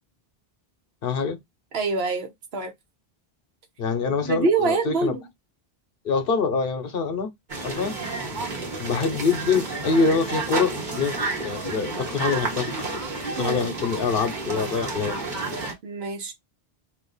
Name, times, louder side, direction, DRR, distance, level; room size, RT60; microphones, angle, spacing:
voice 1, 1.0-1.4 3.8-5.2 6.0-7.3 7.6-8.0 8.8-13.0 13.4-15.2, left 5 dB, 65° left, 0.9 m, -25 dB
voice 2, 1.7-2.7 4.2-5.2 13.4-13.7 15.8-16.3, right 4 dB, 80° right, 1.1 m, -25 dB
sound 1, 7.5-15.7, right 3 dB, 50° right, 1.1 m, -31 dB
2.6 x 2.4 x 3.8 m
omnidirectional pair, 1.0 m